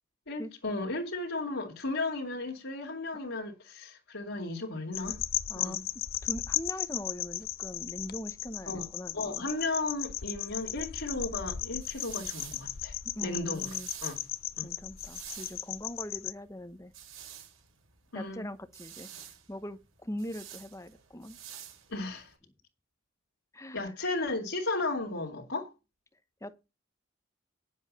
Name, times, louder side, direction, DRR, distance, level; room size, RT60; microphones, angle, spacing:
voice 1, 0.3-5.2 5.5-5.8 8.7-8.9 9.1-13.7 14.0-14.2 14.6-14.7 18.1-18.5 21.9-22.3 23.7-25.7, left 2 dB, 70° left, 2.5 m, -35 dB
sound 1, 4.9-16.3, left 12 dB, 45° left, 0.6 m, -36 dB
voice 2, 6.2-9.4 13.1-13.9 14.6-16.9 18.1-21.4 23.5-23.9 26.4-26.7, left 1 dB, 15° left, 1.0 m, -41 dB
sound 2, 11.4-22.3, right 10 dB, 75° right, 4.4 m, -49 dB
10.5 x 7.5 x 5.4 m
head